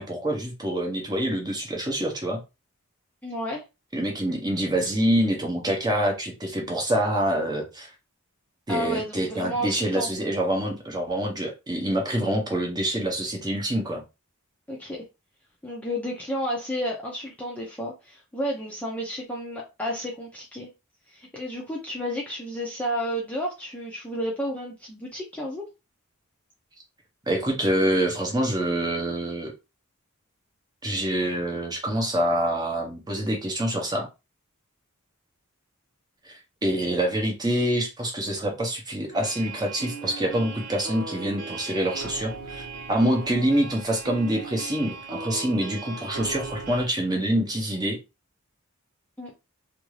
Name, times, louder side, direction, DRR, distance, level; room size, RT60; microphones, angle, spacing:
voice 1, 0.0-2.4 3.9-7.9 8.7-14.0 27.3-29.5 30.8-34.1 36.2-48.0, right 1 dB, 20° right, 1 dB, 0.8 m, -26 dB
voice 2, 3.2-3.6 8.7-10.1 14.7-15.0 15.6-20.7 21.1-25.6 49.2-49.3, equal, 5° left, -3 dB, 0.5 m, -31 dB
sound 1, 39.1-46.9, right 4 dB, 75° right, 1.1 m, -37 dB
2.6 x 2.4 x 3.1 m, 0.26 s
head